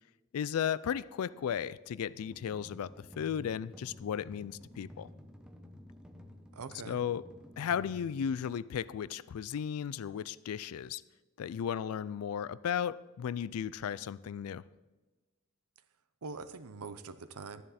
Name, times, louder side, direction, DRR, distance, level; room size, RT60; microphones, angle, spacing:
voice 1, 0.3-5.1 6.9-7.2 7.6-11.0 11.4-14.6, left 8 dB, 75° left, 0.3 m, -35 dB
sound 1, 2.2-9.1, left 1 dB, 5° right, 0.8 m, -52 dB
voice 2, 6.5-7.0 16.2-17.6, right 4 dB, 90° right, 0.7 m, -43 dB
12.0 x 10.5 x 4.2 m
head